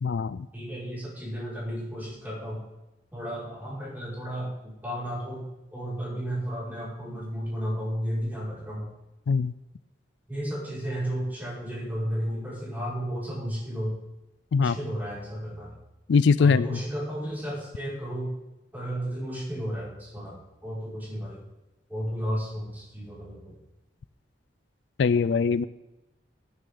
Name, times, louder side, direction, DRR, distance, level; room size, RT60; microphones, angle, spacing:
voice 1, 0.0-0.4 9.3-9.5 14.5-14.8 16.1-16.8 25.0-25.6, left 5 dB, 70° left, 17 dB, 0.4 m, -22 dB
voice 2, 0.5-2.6 3.1-4.5 4.8-5.4 5.7-8.9 10.3-14.0 14.6-15.7 16.4-18.3 18.7-21.4 21.9-23.6, equal, 10° right, -8 dB, 5.8 m, -33 dB
20.0 x 9.7 x 4.0 m, 1.0 s
head